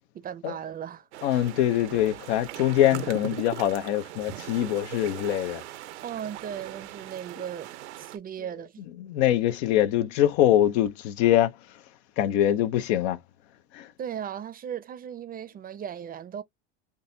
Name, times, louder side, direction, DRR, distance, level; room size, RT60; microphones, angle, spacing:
voice 1, 0.1-1.1 6.0-8.8 14.0-16.4, right 9 dB, 25° right, 0.6 m, -37 dB
sound 1, 1.1-8.2, right 14 dB, 85° right, 0.7 m, -40 dB
voice 2, 1.2-5.6 9.0-11.5 12.2-13.2 13.7-13.9, left 12 dB, 70° left, 0.8 m, -23 dB
3.8 x 2.8 x 2.7 m
supercardioid pair, 105°, 33 cm